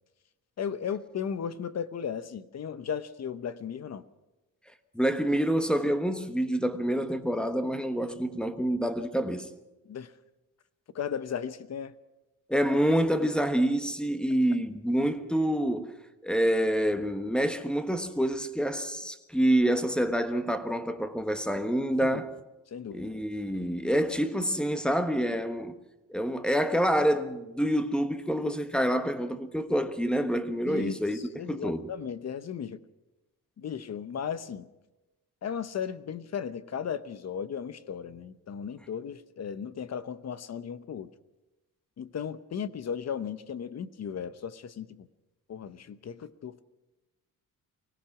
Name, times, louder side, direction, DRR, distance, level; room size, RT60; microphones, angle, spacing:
voice 1, 0.6-4.0 9.9-10.1 10.9-11.9 22.0-22.2 22.7-23.1 30.7-32.8 33.6-34.7 35.4-41.1 42.0-45.1 45.5-46.6, left 7 dB, 50° left, 1.0 m, -36 dB
voice 2, 4.9-9.5 12.5-15.9 16.2-22.3 22.9-25.7 26.1-31.2 31.5-31.9, equal, 5° left, 1.3 m, -27 dB
24.0 x 18.0 x 6.0 m
cardioid pair, 140°, 35 cm